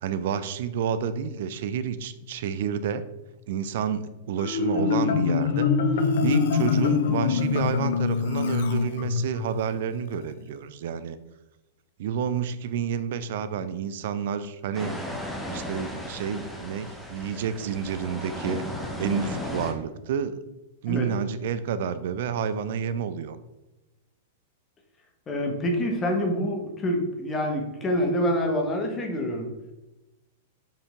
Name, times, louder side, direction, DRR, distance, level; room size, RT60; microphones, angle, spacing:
voice 1, 0.0-3.0 3.5-5.7 6.2-11.2 12.0-15.0 15.5-18.6 19.0-20.4 20.8-23.4, right 7 dB, 55° right, 13 dB, 0.5 m, -29 dB
Marimba xylophone, 4.4-9.5, left 6 dB, 55° left, 0.7 m, -24 dB
sound 1, 14.7-19.7, left 1 dB, 5° left, 1.2 m, -35 dB
voice 2, 25.3-29.5, equal, 20° left, 2 dB, 1.5 m, -26 dB
6.9 x 5.2 x 3.7 m, 1.0 s
figure-of-eight pair, 100°, 0 cm